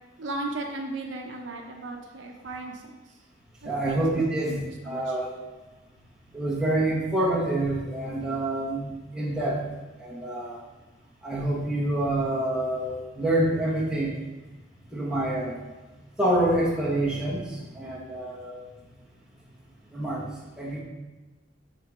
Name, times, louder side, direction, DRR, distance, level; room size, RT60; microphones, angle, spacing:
voice 1, 0.2-3.0 3.6-4.0 4.4-4.6 4.8-5.2, right 2 dB, 70° right, 2 dB, 0.7 m, -36 dB
voice 2, 3.6-5.3 6.3-9.6 10.0-10.6 11.2-14.2 14.9-15.6 16.2-18.7 19.9-20.3 20.5-20.8, right 1 dB, 5° right, -6 dB, 1.4 m, -27 dB
6.7 x 3.7 x 4.8 m, 1.2 s
head